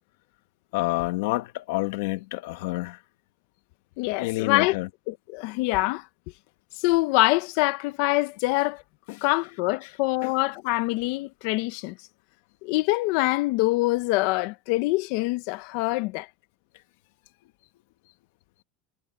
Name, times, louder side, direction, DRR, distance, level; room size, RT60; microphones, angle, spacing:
voice 1, 0.7-3.0 4.2-4.9 9.1-9.2 10.2-10.3, left 19 dB, 80° left, 1.8 m, -28 dB
voice 2, 4.0-4.8 5.1-6.1 6.8-8.8 9.2-12.0 12.6-16.3, left 21 dB, 60° left, 0.8 m, -25 dB
supercardioid pair, 155°, 0 cm